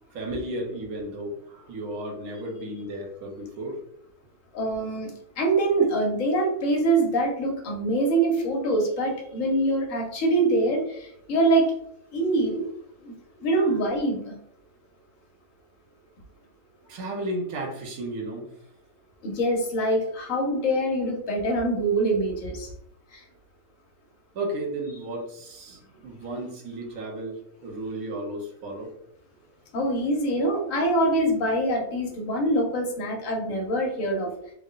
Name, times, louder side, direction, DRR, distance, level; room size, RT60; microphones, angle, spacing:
voice 1, 0.1-3.8 13.6-13.8 16.9-18.4 24.3-28.9, right 1 dB, 75° right, 0 dB, 1.3 m, -34 dB
voice 2, 4.5-11.7 12.1-12.7 13.0-14.3 19.2-22.7 23.1-23.2 29.7-34.3, right 2 dB, 65° left, 2 dB, 1.2 m, -24 dB
3.7 x 2.2 x 3.7 m, 0.71 s
omnidirectional pair, 1.5 m